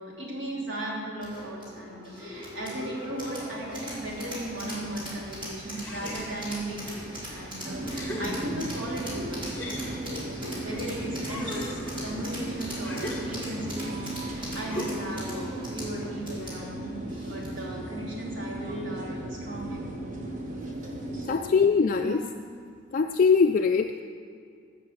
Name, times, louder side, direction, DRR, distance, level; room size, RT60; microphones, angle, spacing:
voice 1, 0.0-9.9 10.3-20.2 21.1-21.7 21.9-22.2, right 1 dB, 70° right, -4 dB, 3.0 m, -37 dB
sound 1, 1.2-17.7, equal, 25° right, 3.4 m, -40 dB
sound 2, 5.8-6.7 7.3-7.4 7.9-8.9 9.4-10.9 11.2-13.7 14.7-15.3, equal, 10° left, 1.6 m, -39 dB
sound 3, 7.6-21.4, right 1 dB, 40° right, 1.3 m, -36 dB
voice 2, 21.3-22.2 22.9-24.0, left 5 dB, 40° left, 5 dB, 0.3 m, -22 dB
13.0 x 5.8 x 7.9 m, 2.3 s
head